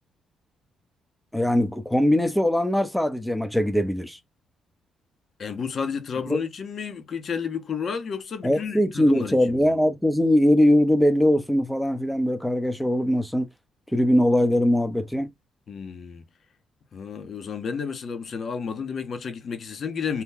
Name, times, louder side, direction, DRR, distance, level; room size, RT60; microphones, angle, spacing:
voice 1, 1.3-4.2 6.3-6.4 8.4-13.5 13.9-15.3, left 1 dB, 5° left, 0.6 m, -21 dB
voice 2, 5.4-9.7 15.7-16.2 16.9-20.2, left 6 dB, 50° left, 0.8 m, -31 dB
2.8 x 2.2 x 3.5 m
cardioid pair, 90°, 0 cm